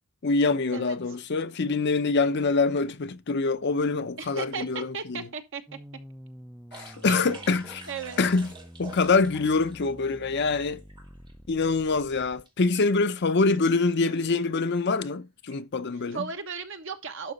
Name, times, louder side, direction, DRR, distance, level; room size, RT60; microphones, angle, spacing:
voice 1, 0.2-5.3 6.7-7.8 8.2-8.5 8.8-10.8 11.5-16.3, left 3 dB, 50° left, 0.6 m, -25 dB
voice 2, 4.2-5.6 7.1-7.5 7.9-8.2 14.0-14.2 16.1-17.3, right 5 dB, 60° right, 1.2 m, -36 dB
sound 1, 5.7-12.4, equal, ahead, 0.5 m, -48 dB
sound 2, 6.7-9.8 10.1-11.3 11.8-11.9 12.2-12.5 12.7-12.8 13.5-13.8 14.1-14.3 15.0-15.1 15.5-15.6, right 2 dB, 20° right, 1.9 m, -47 dB
11.5 x 4.8 x 4.1 m
head